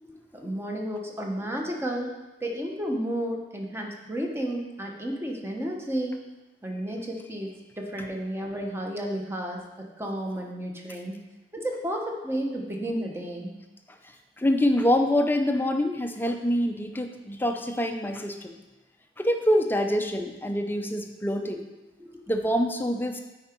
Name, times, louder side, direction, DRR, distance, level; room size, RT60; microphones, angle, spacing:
voice 1, 0.0-2.1 2.4-6.2 6.6-11.2 11.5-13.6 22.0-22.2, right 1 dB, 15° right, 1 dB, 1.0 m, -32 dB
voice 2, 14.4-18.6 19.2-21.6 22.3-23.2, equal, 10° left, 5 dB, 0.5 m, -25 dB
8.9 x 4.9 x 4.4 m, 1.1 s
head